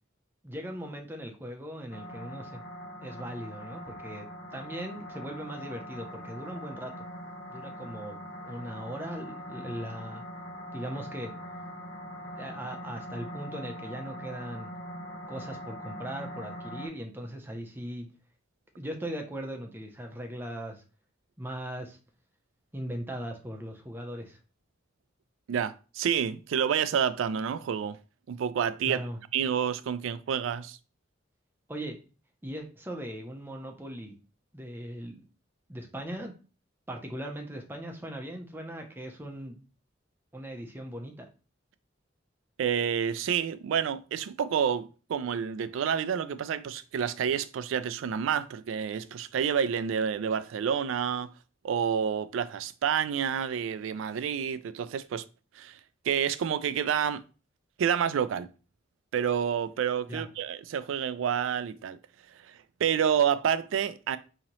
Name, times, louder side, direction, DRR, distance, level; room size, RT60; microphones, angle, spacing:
voice 1, 0.4-2.6 3.0-7.1 7.5-8.2 8.4-10.2 10.7-11.3 12.4-14.7 15.3-18.1 18.8-20.8 21.4-22.0 22.7-24.4 28.9-29.2 31.7-32.0 32.4-34.1 34.5-35.2 35.7-36.3 36.9-39.6 40.3-41.1 60.1-60.3, right 1 dB, 10° right, 0.7 m, -39 dB
sound 1, 1.9-16.9, equal, 70° left, 1.0 m, -42 dB
voice 2, 25.5-28.0 28.3-29.0 29.3-30.8 42.6-51.3 51.6-55.2 55.5-55.8 56.0-57.2 57.8-58.5 59.1-62.0 62.4-64.2, right 8 dB, 80° right, 0.3 m, -29 dB
3.9 x 2.8 x 3.0 m
head